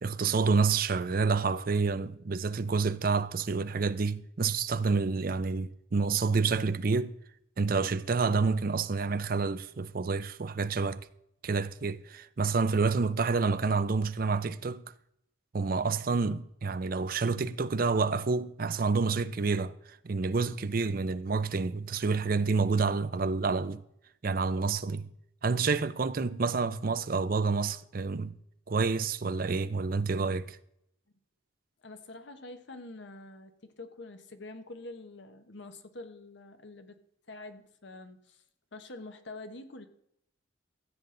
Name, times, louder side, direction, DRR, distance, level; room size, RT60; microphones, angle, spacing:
voice 1, 0.0-7.1 7.6-11.1 11.4-14.8 15.5-23.8 24.2-25.1 25.4-28.3 28.7-30.6, right 4 dB, 45° right, 0.5 m, -28 dB
voice 2, 31.8-37.0 37.3-38.4 38.7-39.9, left 2 dB, 60° left, 1.1 m, -46 dB
14.5 x 8.2 x 3.8 m
head